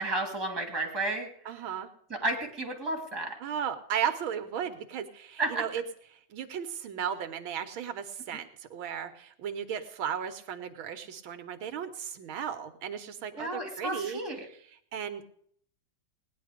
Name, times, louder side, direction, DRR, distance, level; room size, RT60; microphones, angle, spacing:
voice 1, 0.0-1.3 2.1-3.3 5.4-5.6 13.4-14.5, right 2 dB, 10° right, 1 dB, 2.6 m, -32 dB
voice 2, 1.5-1.9 3.4-5.8 6.1-14.2 14.9-15.2, right 8 dB, 85° right, 8 dB, 1.8 m, -35 dB
18.0 x 10.0 x 5.1 m, 0.63 s
omnidirectional pair, 2.2 m